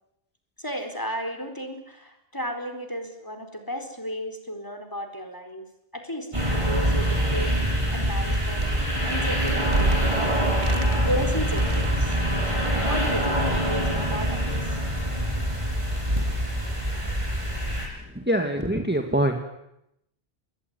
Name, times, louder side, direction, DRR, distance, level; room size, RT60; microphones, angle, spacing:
voice 1, 0.6-5.7 5.9-8.6 9.0-10.5 11.0-12.2 12.5-14.6, equal, 20° left, 6 dB, 4.4 m, -34 dB
sound 1, 6.3-17.9, equal, 30° right, 8.2 m, -25 dB
sound 2, 7.1-7.7 8.2-10.1 10.5-11.2 11.5-12.2, right 2 dB, 55° right, 2.0 m, -30 dB
voice 2, 17.9-19.4, right 1 dB, 10° right, 4 dB, 2.2 m, -25 dB
27.5 x 21.5 x 9.6 m, 0.81 s
omnidirectional pair, 1.1 m